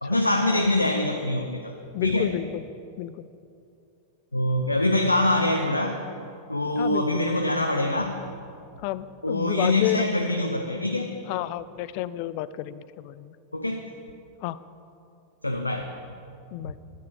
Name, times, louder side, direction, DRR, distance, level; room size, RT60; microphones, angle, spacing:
voice 1, 0.0-1.8 2.0-2.3 4.3-6.0 6.5-8.2 9.2-11.1 13.5-13.8 15.4-15.9, left 1 dB, 85° left, 4 dB, 0.7 m, -24 dB
voice 2, 1.9-2.6 3.0-3.3 6.8-7.3 8.8-10.1 11.3-13.4 14.4-14.6 16.5-16.8, left 14 dB, 45° left, 16 dB, 0.4 m, -31 dB
12.5 x 8.4 x 6.9 m, 2.6 s
figure-of-eight pair, 90°, 0 cm